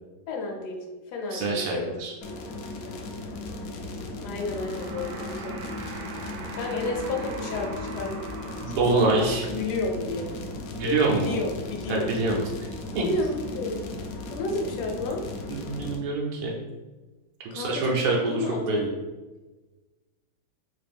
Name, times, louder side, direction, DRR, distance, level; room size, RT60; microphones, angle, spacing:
voice 1, 0.3-0.8 1.1-2.0 4.2-5.6 6.5-8.2 8.6-10.3 10.8-12.1 13.0-13.9 14.3-15.2 17.5-18.0 18.3-18.9, left 2 dB, 70° left, 1 dB, 1.1 m, -31 dB
voice 2, 1.3-2.1 8.6-9.4 10.8-11.4 11.9-12.4 12.9-13.0 15.5-16.6 17.5-18.9, right 3 dB, 90° right, -2 dB, 1.4 m, -25 dB
sound 1, 2.2-16.0, left 2 dB, 85° left, 0.8 m, -36 dB
sound 2, 4.3-9.4, right 4 dB, 75° right, 1.1 m, -42 dB
3.4 x 2.5 x 3.4 m, 1.2 s
omnidirectional pair, 2.1 m